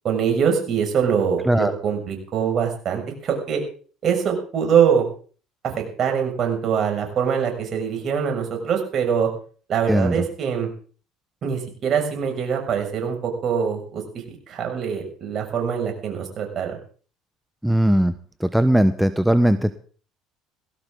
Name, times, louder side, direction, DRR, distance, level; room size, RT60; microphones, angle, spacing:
voice 1, 0.0-3.6 4.0-5.0 5.6-9.3 9.7-10.7 11.4-14.0 14.3-16.8, right 7 dB, 50° right, 3 dB, 6.5 m, -23 dB
voice 2, 17.6-18.1 18.4-19.8, right 1 dB, 5° right, 11 dB, 1.1 m, -18 dB
19.0 x 16.0 x 3.9 m, 0.43 s
hypercardioid pair, 65°, 0 cm